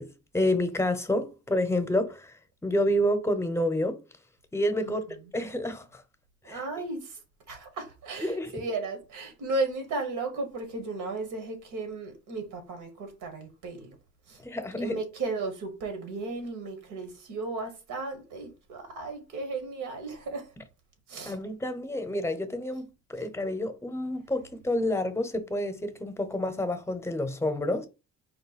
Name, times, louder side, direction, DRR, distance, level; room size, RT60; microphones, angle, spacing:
voice 1, 0.0-2.3 2.6-4.0 4.5-5.0 5.3-6.0 6.5-6.6 8.2-8.5 14.4-15.0 21.3-27.9, left 1 dB, 10° left, 0.8 m, -29 dB
voice 2, 4.8-5.2 6.4-7.2 7.5-14.0 14.3-14.4 14.8-20.5 21.1-21.4, right 3 dB, 85° right, 1.3 m, -35 dB
4.4 x 2.1 x 4.1 m
cardioid pair, 90°, 30 cm